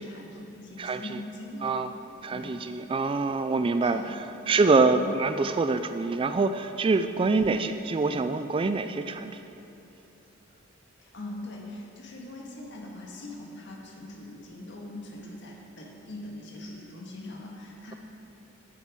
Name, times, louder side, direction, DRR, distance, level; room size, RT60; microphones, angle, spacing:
voice 1, 0.0-1.8 2.3-2.6 3.8-4.1 4.8-5.1 7.2-7.4 11.0-17.9, left 1 dB, 60° left, -1 dB, 1.7 m, -42 dB
voice 2, 0.8-1.2 1.6-1.9 2.2-9.4, right 3 dB, 25° right, 9 dB, 0.3 m, -25 dB
8.9 x 8.6 x 6.1 m, 2.9 s
head